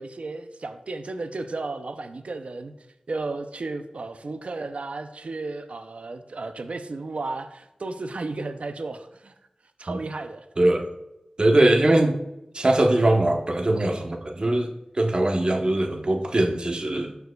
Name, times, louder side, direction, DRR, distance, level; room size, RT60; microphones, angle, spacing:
voice 1, 0.0-2.7 3.1-9.3 9.8-10.5, right 3 dB, 70° right, 8 dB, 0.5 m, -34 dB
voice 2, 10.6-10.9 11.4-12.2 12.5-17.2, right 1 dB, 45° right, 3 dB, 0.9 m, -21 dB
12.5 x 4.6 x 2.3 m, 0.89 s
wide cardioid pair, 60°, 2 cm